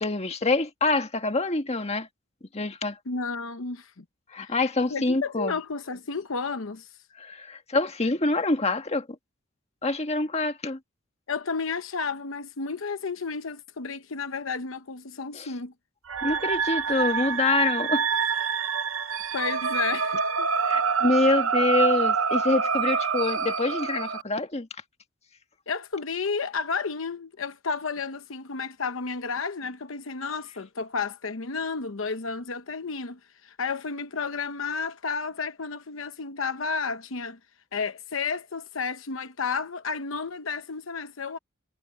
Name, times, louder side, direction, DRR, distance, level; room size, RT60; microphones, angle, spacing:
voice 1, 0.0-2.1 2.5-3.0 4.3-5.6 7.2-9.1 9.8-10.8 15.3-15.5 16.2-18.1 20.6-24.7, left 3 dB, 30° left, 1.6 m, -26 dB
voice 2, 3.1-4.0 4.3-4.5 4.9-6.9 11.3-15.7 19.3-20.5 25.7-37.4 37.7-41.4, left 5 dB, 75° left, 0.9 m, -32 dB
sound 1, 16.1-24.2, right 6 dB, 75° right, 0.9 m, -26 dB
head